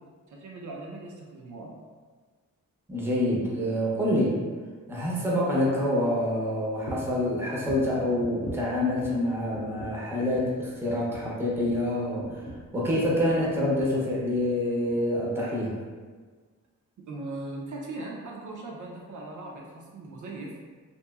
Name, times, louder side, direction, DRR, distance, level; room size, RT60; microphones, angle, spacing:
voice 1, 0.3-1.7 17.1-20.6, right 2 dB, 60° right, -2 dB, 0.5 m, -39 dB
voice 2, 2.9-4.4 4.9-12.4 12.7-15.8, left 1 dB, 5° right, -5 dB, 0.6 m, -26 dB
sound 1, 6.8-7.2 7.6-9.3 9.5-10.1 10.3-10.6 10.9-13.2 13.5-14.0 14.3-14.5 14.9-15.0, equal, 45° left, 0.6 m, -42 dB
2.9 x 2.6 x 2.3 m, 1.5 s
wide cardioid pair, 110°, 33 cm